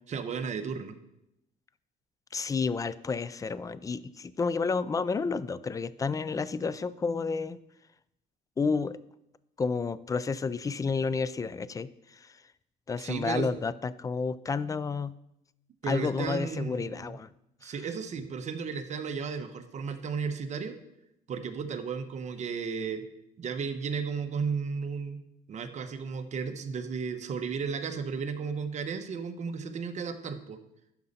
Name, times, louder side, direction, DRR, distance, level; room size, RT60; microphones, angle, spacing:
voice 1, 0.1-1.0 13.0-13.5 15.8-17.2 17.6-20.8 21.3-23.0 23.4-25.2 25.5-30.6, right 5 dB, 45° right, 8 dB, 1.0 m, -34 dB
voice 2, 2.3-7.6 8.6-9.0 9.6-12.3 12.9-15.1 15.9-17.3 17.6-17.7, left 4 dB, 20° left, 17 dB, 0.4 m, -31 dB
11.5 x 5.3 x 4.2 m, 0.82 s
cardioid pair, 110°, 17 cm